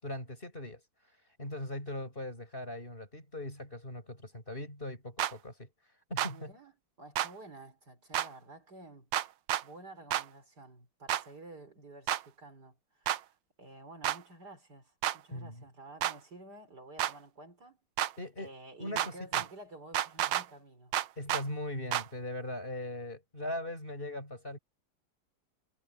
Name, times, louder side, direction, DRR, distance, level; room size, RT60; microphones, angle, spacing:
voice 1, 0.0-0.8 1.4-5.7 6.1-6.5 15.3-15.6 18.2-18.5 18.8-19.4 21.2-24.6, left 1 dB, 25° left, 8.1 m, -40 dB
sound 1, 5.2-5.3 6.2-6.3 7.2-7.3 8.1-8.3 9.1-9.6 10.1-10.2 11.1-11.2 12.1-12.2 13.1-13.2 14.0-14.2 15.0-15.2 16.0-16.1 17.0-17.1 18.0-18.1 19.0-19.5 19.9-20.4 20.9-21.4 21.9-22.1, right 12 dB, 75° right, 1.4 m, -30 dB
voice 2, 6.3-6.7 7.0-9.1 9.6-13.2 13.6-17.8 18.4-20.9, right 2 dB, 55° right, 5.4 m, -51 dB
omnidirectional pair, 2.1 m